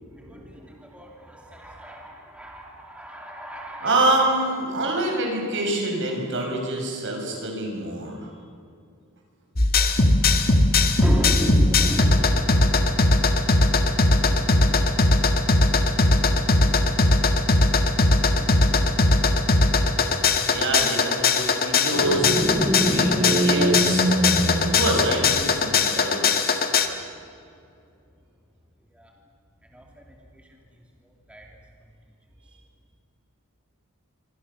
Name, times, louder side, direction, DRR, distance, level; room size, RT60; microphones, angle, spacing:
voice 1, 0.1-4.1 11.0-13.1 13.9-15.0 15.9-16.3 16.6-17.0 18.2-18.8 29.0-29.1 29.7-29.8 31.3-31.4, equal, 5° right, 0 dB, 2.7 m, -34 dB
voice 2, 3.8-8.3 20.5-22.3 22.8-24.1 24.6-26.7, right 2 dB, 60° right, 1 dB, 7.0 m, -26 dB
sound 1, 9.6-26.9, left 3 dB, 45° left, 1.8 m, -19 dB
sound 2, 21.9-25.6, right 1 dB, 35° right, 3.0 m, -23 dB
28.0 x 25.0 x 7.1 m, 2.4 s
head